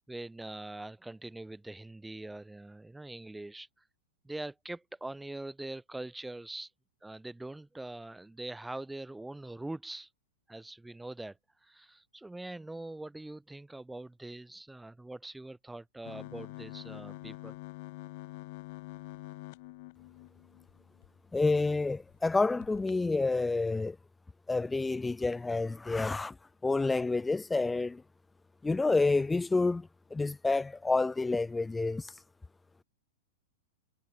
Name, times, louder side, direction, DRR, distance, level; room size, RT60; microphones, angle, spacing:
voice 1, 0.1-3.7 4.2-6.7 7.0-10.1 10.5-11.4 11.6-17.6, right 2 dB, 5° right, 1.0 m, -43 dB
sound 1, 16.0-21.1 21.6-21.7 22.0-22.2 22.6-22.9, left 23 dB, 50° left, 1.0 m, -46 dB
voice 2, 21.3-24.0 24.5-26.3 26.6-28.0 28.6-32.1, left 3 dB, 10° left, 0.5 m, -29 dB
figure-of-eight pair, 100°, 0 cm